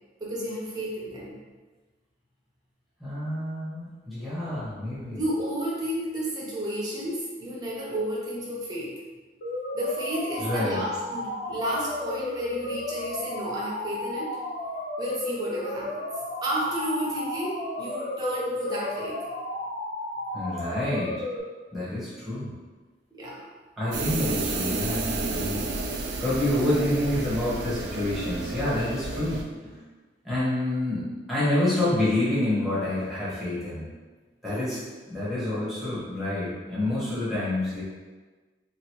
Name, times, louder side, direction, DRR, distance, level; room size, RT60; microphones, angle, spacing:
voice 1, 0.2-1.4 5.1-8.9 9.7-14.3 15.0-16.0 16.4-19.2 23.1-23.4 34.5-34.7, equal, 20° right, -6 dB, 0.7 m, -32 dB
voice 2, 3.0-5.2 10.4-10.8 20.3-21.1 21.7-22.5 23.8-29.8 30.2-33.9 34.4-34.8 35.1-37.8, left 1 dB, ahead, -11 dB, 1.1 m, -28 dB
sound 1, 9.4-21.4, left 1 dB, 55° left, 0.5 m, -33 dB
sound 2, 23.9-29.4, right 3 dB, 70° right, 0.4 m, -31 dB
2.9 x 2.6 x 3.0 m, 1.3 s
head